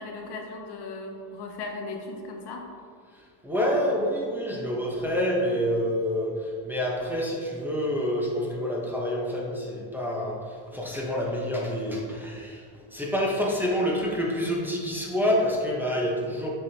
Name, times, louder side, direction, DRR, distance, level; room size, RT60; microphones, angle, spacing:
voice 1, 0.0-2.7, left 3 dB, 55° left, 1 dB, 0.9 m, -37 dB
voice 2, 3.4-12.6 12.9-16.5, equal, 5° right, -3 dB, 1.1 m, -27 dB
6.7 x 5.1 x 2.9 m, 2.1 s
cardioid pair, 100°, 48 cm